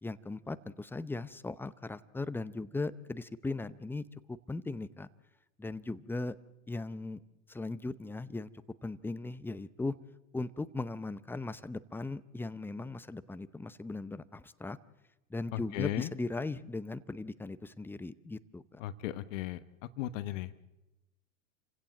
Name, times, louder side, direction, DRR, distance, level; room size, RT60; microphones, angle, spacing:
voice 1, 0.0-5.1 5.6-6.3 6.7-7.2 7.5-8.5 8.8-10.0 10.3-14.8 15.3-18.8, left 3 dB, 5° left, 14 dB, 0.7 m, -38 dB
voice 2, 15.5-16.1 18.8-19.6 20.0-20.5, left 13 dB, 60° left, 13 dB, 1.1 m, -36 dB
28.5 x 16.0 x 7.7 m, 0.98 s
hypercardioid pair, 95°, 42 cm